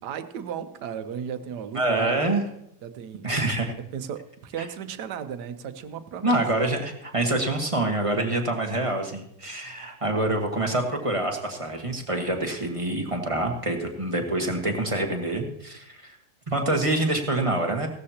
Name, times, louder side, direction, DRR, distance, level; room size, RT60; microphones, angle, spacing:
voice 1, 0.0-2.2 2.8-3.3 3.9-6.4, right 8 dB, 90° right, 10 dB, 1.4 m, -35 dB
voice 2, 1.7-2.4 3.2-3.7 6.2-16.2 16.5-17.9, right 2 dB, 20° right, 2 dB, 1.4 m, -26 dB
16.5 x 13.0 x 2.8 m, 0.75 s
omnidirectional pair, 1.7 m